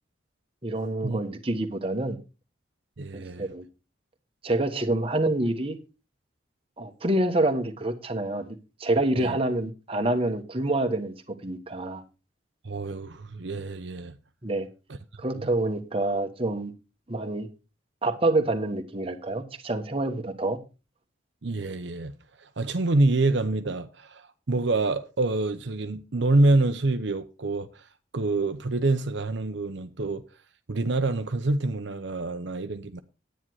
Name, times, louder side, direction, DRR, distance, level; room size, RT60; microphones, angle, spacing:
voice 1, 0.6-2.2 3.1-3.6 4.4-5.8 6.8-12.0 14.4-14.7 15.2-16.7 17.1-17.5 18.0-20.6, right 2 dB, 30° right, 1.3 m, -27 dB
voice 2, 3.0-3.5 9.2-9.4 12.6-14.2 15.3-15.5 21.4-30.2 30.7-33.0, right 2 dB, 70° right, 0.8 m, -27 dB
10.0 x 9.1 x 4.7 m
head